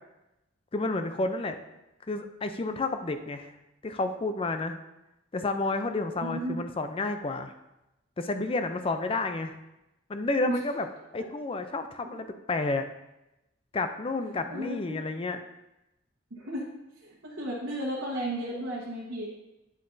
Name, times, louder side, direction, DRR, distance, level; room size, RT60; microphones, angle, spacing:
voice 1, 0.7-1.6 2.1-3.5 3.8-4.8 5.3-7.5 8.2-9.5 10.1-10.9 11.1-12.8 13.7-15.4, left 3 dB, 30° left, 8 dB, 0.4 m, -30 dB
voice 2, 6.2-6.6 10.5-10.6 11.2-11.3 14.5-15.0 16.3-16.7 17.0-19.3, right 1 dB, 75° right, -5 dB, 1.2 m, -34 dB
8.7 x 6.7 x 2.6 m, 0.94 s
head